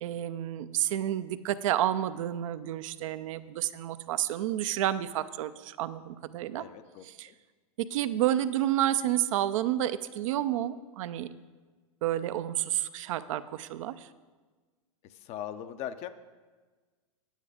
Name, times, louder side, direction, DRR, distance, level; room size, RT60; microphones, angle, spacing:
voice 1, 0.0-6.6 7.1-7.3 7.8-11.3 12.0-14.1, right 12 dB, 65° right, 12 dB, 0.5 m, -30 dB
voice 2, 6.6-7.3 15.0-16.1, left 10 dB, 35° left, 11 dB, 0.6 m, -40 dB
9.6 x 9.2 x 4.9 m, 1.4 s
hypercardioid pair, 115°, 18 cm